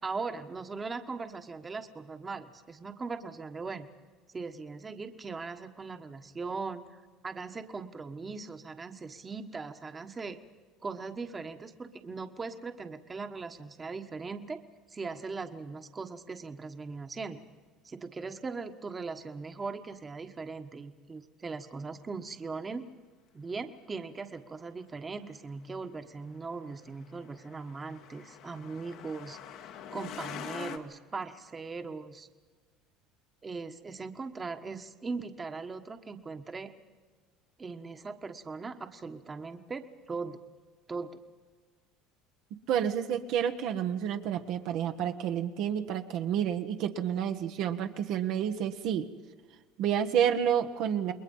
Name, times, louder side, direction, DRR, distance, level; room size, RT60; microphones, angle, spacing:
voice 1, 0.0-3.9 4.3-10.4 10.8-14.6 14.9-17.4 17.8-22.8 23.3-32.3 33.4-36.7 37.6-40.4 40.9-41.2, right 4 dB, 25° right, 7 dB, 1.4 m, -39 dB
Truck, 26.7-30.8, left 8 dB, 65° left, 1.7 m, -44 dB
voice 2, 42.7-49.1 49.8-51.1, right 9 dB, 65° right, 6 dB, 1.3 m, -29 dB
28.5 x 21.0 x 5.6 m, 1.4 s
supercardioid pair, 110°, 0 cm